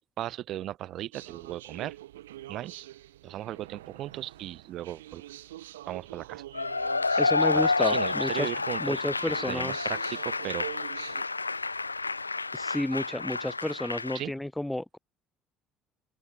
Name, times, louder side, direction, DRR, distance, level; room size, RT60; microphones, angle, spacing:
voice 1, 0.2-2.0 2.5-2.9 3.2-5.2 5.9-6.4 7.5-9.0 9.3-10.7 14.1-14.3, right 13 dB, 50° right, 1.1 m, -37 dB
sound 1, 1.1-11.2, right 14 dB, 75° right, 2.5 m, -46 dB
Cheering / Applause / Crowd, 6.5-14.2, left 3 dB, 85° left, 0.3 m, -29 dB
voice 2, 7.2-8.5 8.8-9.9 12.5-15.0, left 1 dB, 5° left, 0.4 m, -31 dB
open air
figure-of-eight pair, 55°, 0 cm